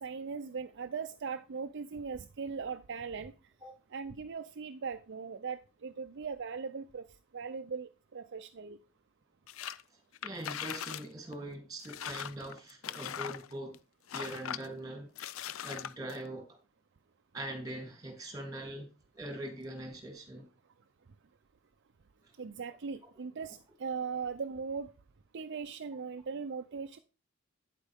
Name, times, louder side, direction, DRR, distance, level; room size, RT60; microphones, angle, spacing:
voice 1, 0.0-3.3 3.9-7.0 7.3-8.8 22.4-24.9 25.3-27.0, right 5 dB, 60° right, 8 dB, 0.5 m, -39 dB
sound 1, 9.5-9.8 10.1-11.1 11.3-11.4 11.8-13.8 14.1-14.7 15.1-16.2, left 9 dB, 70° left, 0.5 m, -40 dB
voice 2, 10.2-13.7 14.1-15.1 15.4-16.6 17.3-18.9 19.1-20.4, right 1 dB, 20° right, 3 dB, 3.0 m, -42 dB
9.2 x 8.2 x 3.5 m, 0.31 s
head